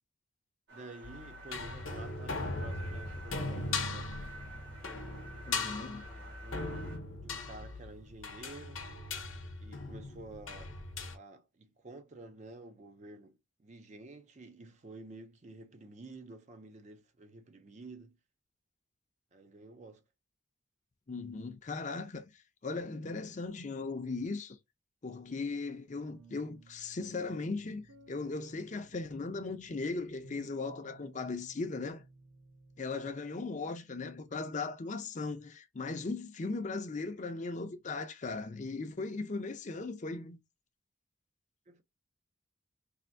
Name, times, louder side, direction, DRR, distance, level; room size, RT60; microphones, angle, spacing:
voice 1, 0.7-4.1 6.4-7.0 7.2-8.9 9.6-10.7 11.1-18.2 19.3-20.0 41.7-41.8, right 2 dB, 35° right, 0.4 m, -50 dB
sound 1, 0.7-7.0, right 2 dB, 60° right, 1.5 m, -51 dB
sound 2, 1.0-11.2, left 3 dB, 70° left, 0.8 m, -39 dB
voice 2, 5.5-6.1 21.1-22.2 22.6-24.6 25.0-32.0 32.8-40.4, left 3 dB, 35° left, 0.5 m, -38 dB
sound 3, 26.1-33.1, right 2 dB, 85° right, 2.0 m, -58 dB
3.4 x 2.6 x 2.6 m
head